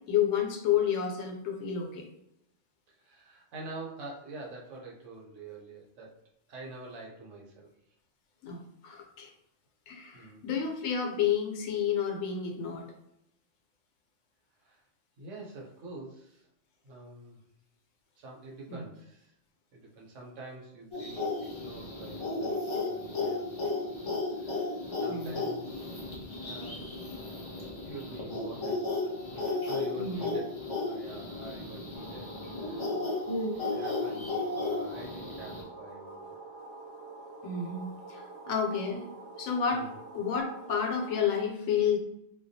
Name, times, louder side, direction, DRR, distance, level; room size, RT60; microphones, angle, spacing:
voice 1, 0.1-2.0 8.4-9.3 9.9-12.9 18.7-18.8 25.1-25.4 29.9-30.3 37.4-39.0 39.4-39.9 40.1-42.0, left 7 dB, 90° left, 2 dB, 0.9 m, -30 dB
voice 2, 2.9-6.1 6.5-7.7 10.1-10.4 14.6-14.8 15.2-16.5 16.8-17.4 18.2-19.3 19.7-24.1 24.4-26.0 26.4-27.2 27.8-30.5 30.7-32.3 32.6-32.9 33.3-36.4 39.7-40.0, right 2 dB, 80° right, -2 dB, 1.1 m, -46 dB
sound 1, 20.9-35.6, left 2 dB, 50° left, 0.3 m, -34 dB
sound 2, 31.9-41.4, right 3 dB, 45° right, 0.5 m, -47 dB
2.3 x 2.2 x 2.6 m, 0.80 s
omnidirectional pair, 1.3 m